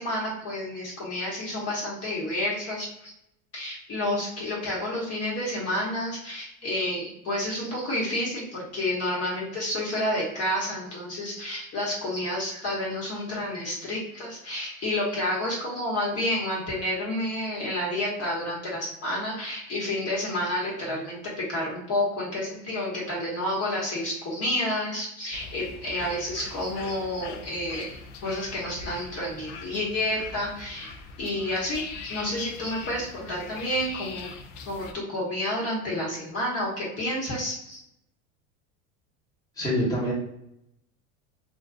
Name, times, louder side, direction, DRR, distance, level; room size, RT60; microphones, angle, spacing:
voice 1, 0.0-3.1 3.5-21.2 21.5-28.0 28.2-34.3 34.7-37.8, left 1 dB, 35° left, -4 dB, 1.0 m, -30 dB
sound 1, 25.3-34.9, left 5 dB, 60° left, 0.5 m, -41 dB
voice 2, 39.6-40.1, equal, 10° left, -5 dB, 1.1 m, -25 dB
2.5 x 2.3 x 2.4 m, 0.79 s
supercardioid pair, 100°, 41 cm